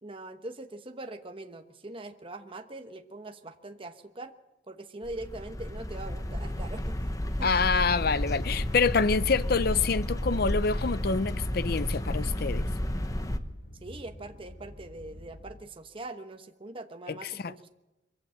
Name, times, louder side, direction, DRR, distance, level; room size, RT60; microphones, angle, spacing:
voice 1, 0.0-4.3 4.7-7.5 13.8-17.7, right 2 dB, 30° right, 1.1 m, -42 dB
sound 1, 5.0-13.4, left 1 dB, 20° left, 1.0 m, -31 dB
sound 2, 6.9-15.6, equal, 80° left, 2.8 m, -49 dB
voice 2, 7.4-12.7 17.1-17.2 17.4-17.5, left 4 dB, 55° left, 0.7 m, -26 dB
23.5 x 15.5 x 7.7 m
head